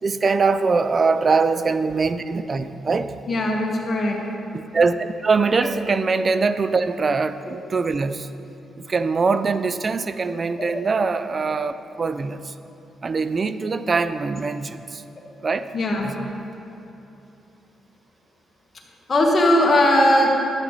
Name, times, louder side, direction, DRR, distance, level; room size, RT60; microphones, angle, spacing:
voice 1, 0.0-3.2 4.5-8.3 8.8-12.5 13.0-15.0 15.4-15.7 16.0-16.4, right 4 dB, 40° right, 12 dB, 0.5 m, -22 dB
voice 2, 3.3-4.2 10.6-10.8 15.7-16.1 19.1-20.3, left 1 dB, 40° left, -1 dB, 1.8 m, -19 dB
12.0 x 8.6 x 4.1 m, 3.0 s
cardioid pair, 80°, 0 cm